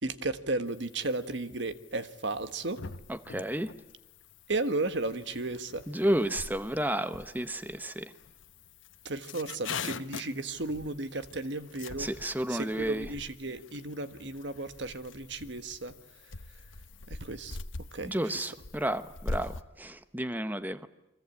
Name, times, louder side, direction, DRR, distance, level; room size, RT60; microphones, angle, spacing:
voice 1, 0.0-2.8 4.5-5.8 9.0-12.1 12.5-16.0 16.2-16.6 17.1-17.6 17.9-18.5, right 2 dB, 65° right, 11 dB, 1.4 m, -34 dB
sound 1, 0.7-19.6, left 3 dB, 80° left, 1.1 m, -44 dB
voice 2, 3.1-3.7 5.9-8.1 12.0-13.1 18.0-20.9, right 1 dB, 10° right, 11 dB, 1.0 m, -32 dB
29.5 x 23.5 x 8.6 m, 0.93 s
head